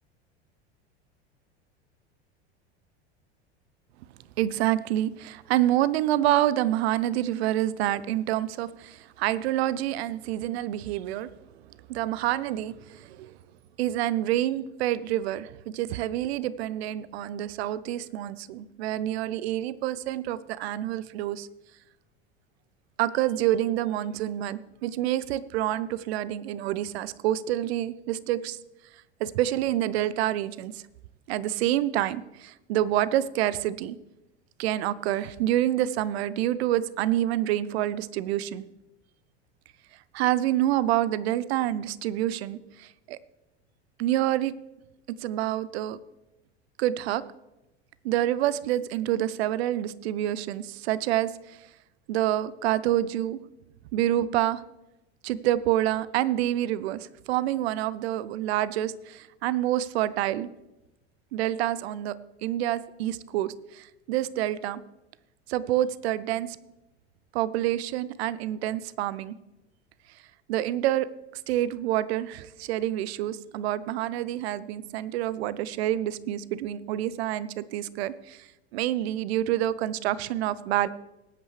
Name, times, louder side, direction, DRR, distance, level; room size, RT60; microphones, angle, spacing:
voice 1, 4.4-11.3 11.9-13.4 13.8-21.5 23.0-28.6 29.2-30.8 31.3-34.0 34.6-38.6 40.1-43.2 44.0-44.5 45.1-46.0 46.8-47.2 48.0-51.6 52.1-53.4 53.9-54.6 55.2-60.5 61.3-64.8 65.5-66.6 67.3-69.3 70.5-71.1 71.5-80.9, right 13 dB, 70° right, 18 dB, 0.6 m, -27 dB
19.0 x 8.7 x 3.3 m, 0.95 s
hypercardioid pair, 85°, 33 cm